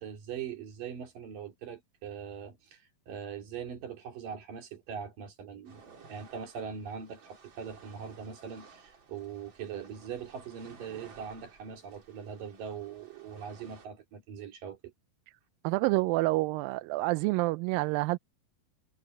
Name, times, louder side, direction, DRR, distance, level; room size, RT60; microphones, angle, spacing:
voice 1, 0.0-14.9, right 7 dB, 65° right, 4.7 m, -41 dB
sound 1, 5.6-13.9, right 5 dB, 35° right, 3.0 m, -56 dB
voice 2, 15.6-18.2, right 21 dB, 85° right, 2.2 m, -28 dB
omnidirectional pair, 4.2 m